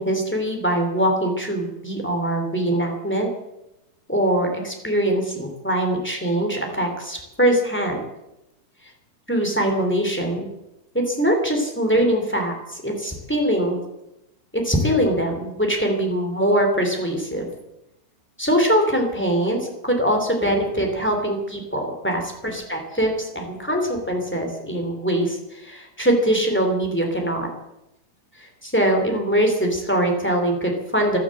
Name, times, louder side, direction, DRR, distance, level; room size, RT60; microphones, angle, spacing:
voice 1, 0.0-3.3 4.1-8.0 9.3-10.5 10.9-13.8 14.5-17.5 18.4-27.5 28.3-31.2, right 1 dB, 5° left, 2 dB, 2.4 m, -22 dB
14.0 x 12.5 x 7.8 m, 0.90 s
omnidirectional pair, 4.5 m